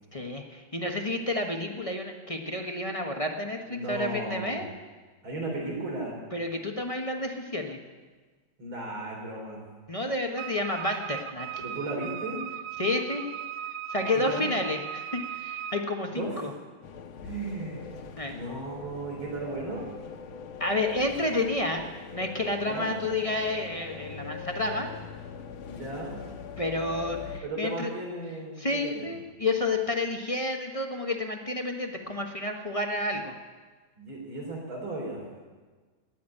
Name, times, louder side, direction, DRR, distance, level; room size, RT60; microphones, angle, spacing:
voice 1, 0.1-4.7 6.3-7.8 9.9-11.6 12.8-13.2 13.9-16.5 18.2-18.3 20.6-21.8 22.1-24.9 26.6-27.9 28.6-33.3, left 2 dB, 25° left, 3 dB, 0.8 m, -30 dB
voice 2, 3.7-4.7 5.2-6.2 8.6-9.7 11.6-12.5 14.0-14.5 16.1-16.5 17.2-17.9 18.3-19.9 22.6-23.0 25.7-26.2 27.4-29.1 34.0-35.2, right 2 dB, 85° right, -1 dB, 4.1 m, -35 dB
Wind instrument woodwind instrument, 10.4-15.9, right 9 dB, 70° right, 1.3 m, -38 dB
sound 1, 16.8-27.4, left 6 dB, 85° left, 1.8 m, -42 dB
18.0 x 7.2 x 9.7 m, 1.4 s
omnidirectional pair, 2.2 m